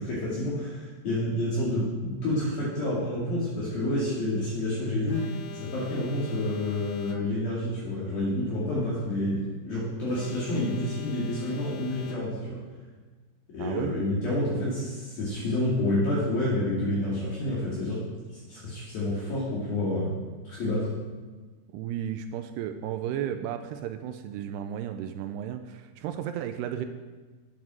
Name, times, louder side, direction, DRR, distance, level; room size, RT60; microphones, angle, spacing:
voice 1, 0.0-12.6 13.5-18.0 18.3-20.1 20.4-20.9, left 1 dB, 60° left, -8 dB, 3.8 m, -29 dB
Alarm, 5.1-7.6 10.1-12.6, left 10 dB, 85° left, 2.2 m, -44 dB
voice 2, 13.6-13.9 21.7-26.9, right 10 dB, 80° right, 8 dB, 2.5 m, -33 dB
9.5 x 8.9 x 6.2 m, 1.4 s
omnidirectional pair, 5.1 m